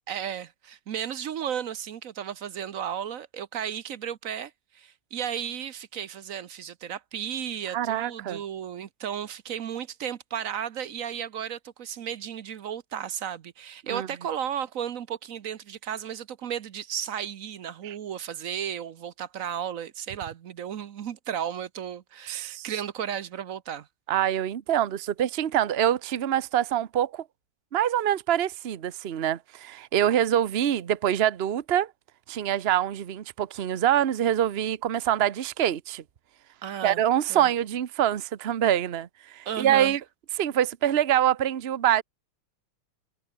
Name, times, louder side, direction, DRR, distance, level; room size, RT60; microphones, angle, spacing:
voice 1, 0.1-23.9 36.6-37.0 37.3-37.5 39.5-40.0, right 9 dB, 55° right, 0.9 m, -34 dB
voice 2, 7.7-8.4 13.9-14.1 17.8-17.9 22.3-22.7 24.1-27.2 27.7-31.9 32.3-36.0 36.8-40.0 40.4-42.0, right 11 dB, 80° right, 0.5 m, -25 dB
omnidirectional pair, 2.3 m